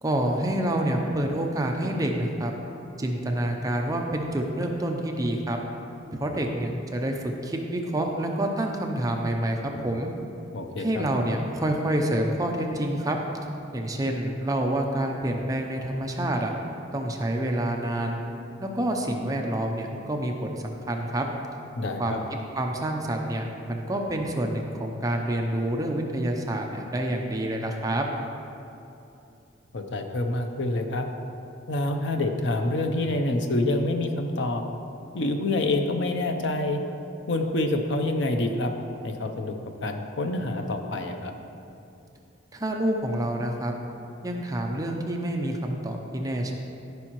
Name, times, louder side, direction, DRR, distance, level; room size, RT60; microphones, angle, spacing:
voice 1, 0.0-2.5 3.0-5.6 6.1-10.1 10.8-13.2 13.7-16.5 16.9-18.2 18.6-21.2 22.0-22.2 22.6-28.1 42.5-43.7 44.2-46.5, right 1 dB, 20° right, 1 dB, 0.6 m, -27 dB
voice 2, 10.5-11.0 21.8-22.2 29.7-31.1 31.7-34.6 35.1-36.8 37.3-38.7 39.0-39.6 39.8-41.3, left 2 dB, 65° left, 5 dB, 0.7 m, -27 dB
14.0 x 5.4 x 3.1 m, 2.8 s
head